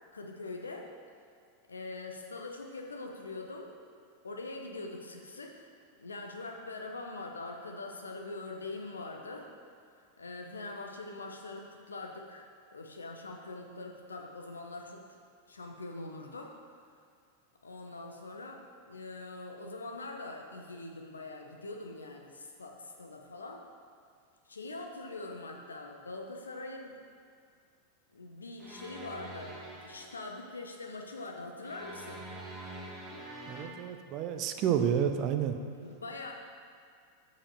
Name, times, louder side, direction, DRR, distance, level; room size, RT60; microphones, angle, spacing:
voice 1, 0.1-0.9 1.7-3.7 4.2-5.7 6.0-9.5 10.2-12.4 12.7-15.2 15.5-16.5 17.6-23.6 24.5-27.0 28.1-32.2 35.8-36.3, left 2 dB, 75° left, 2 dB, 0.8 m, -43 dB
sound 1, 28.6-30.3 31.6-33.7, right 1 dB, 20° right, 1.5 m, -45 dB
voice 2, 33.5-35.6, right 9 dB, 40° right, 7 dB, 0.5 m, -30 dB
7.1 x 5.1 x 5.3 m, 2.3 s
figure-of-eight pair, 90°, 0 cm